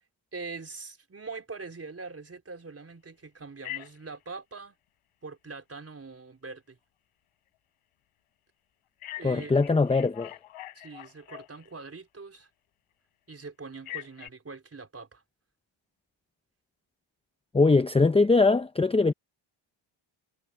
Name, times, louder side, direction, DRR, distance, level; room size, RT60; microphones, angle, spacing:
voice 1, 0.3-4.7 5.2-6.8 9.2-9.5 10.7-12.5 13.3-15.2, right 4 dB, 30° right, 4.3 m, -43 dB
Telephone, 3.6-4.2 9.0-11.9 13.8-14.3, left 14 dB, 85° left, 4.4 m, -42 dB
voice 2, 9.2-10.3 17.5-19.1, left 3 dB, 10° left, 0.7 m, -21 dB
cardioid pair, 90°, 50 cm